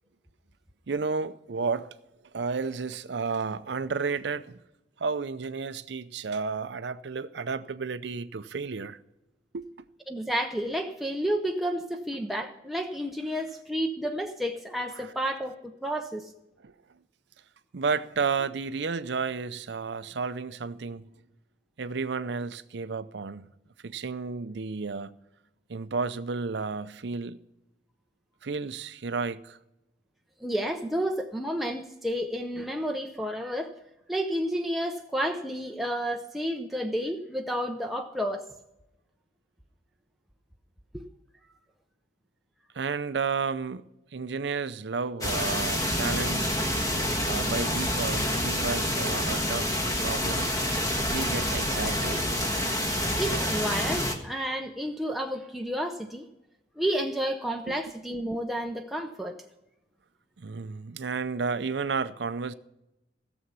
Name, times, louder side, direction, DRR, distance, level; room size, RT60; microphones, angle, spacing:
voice 1, 0.9-2.0 2.3-4.6 5.0-9.0 9.5-9.9 11.9-12.0 15.0-15.1 16.6-16.7 17.7-21.0 21.8-23.5 23.8-25.1 25.7-27.4 28.4-29.6 42.7-43.8 44.1-46.5 47.2-49.7 50.0-50.5 51.0-52.2 57.7-57.8 60.4-62.5, right 5 dB, 70° right, 0.5 m, -32 dB
voice 2, 10.1-16.3 30.4-33.7 34.1-38.4 40.9-41.0 53.2-56.3 56.8-59.4, equal, ahead, 0.6 m, -31 dB
sound 1, 45.2-54.2, left 1 dB, 20° left, 1.3 m, -27 dB
16.0 x 7.1 x 5.5 m
head